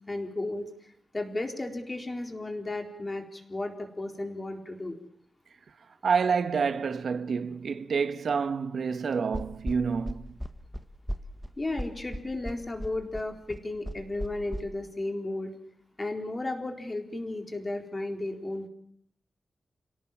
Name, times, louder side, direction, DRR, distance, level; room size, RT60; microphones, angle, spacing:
voice 1, 0.1-0.7 1.1-5.0 11.6-15.5 16.0-18.7, left 2 dB, 25° left, 4.1 m, -34 dB
voice 2, 6.0-10.4, right 5 dB, 70° right, 1.3 m, -28 dB
sound 1, 9.3-14.6, equal, ahead, 1.5 m, -36 dB
29.5 x 17.5 x 7.4 m
wide cardioid pair, 115°, 0 cm